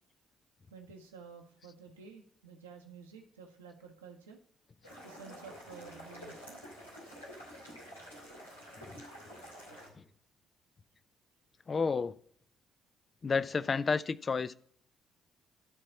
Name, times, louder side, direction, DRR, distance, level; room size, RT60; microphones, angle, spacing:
voice 1, 0.7-4.4 5.0-6.6 9.7-10.0, right 5 dB, 80° right, 1.2 m, -52 dB
sound 1, 4.8-9.9, equal, 90° left, 2.5 m, -49 dB
voice 2, 11.7-12.1 13.2-14.6, left 5 dB, 35° left, 0.5 m, -30 dB
12.5 x 4.2 x 7.2 m
figure-of-eight pair, 45°, 0 cm